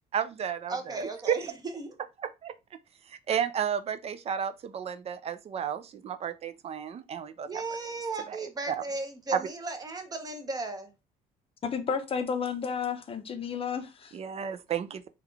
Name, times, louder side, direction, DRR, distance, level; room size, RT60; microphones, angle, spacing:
voice 1, 0.1-1.4 2.4-2.5 3.1-7.5 8.3-8.4 8.7-8.8 9.3-9.4 14.1-15.1, right 8 dB, 40° right, 0.4 m, -32 dB
voice 2, 0.7-2.0 7.4-10.9, right 3 dB, 20° right, 0.8 m, -36 dB
voice 3, 11.6-14.2, left 6 dB, 35° left, 0.6 m, -32 dB
3.5 x 2.3 x 3.2 m
cardioid pair, 110°, 17 cm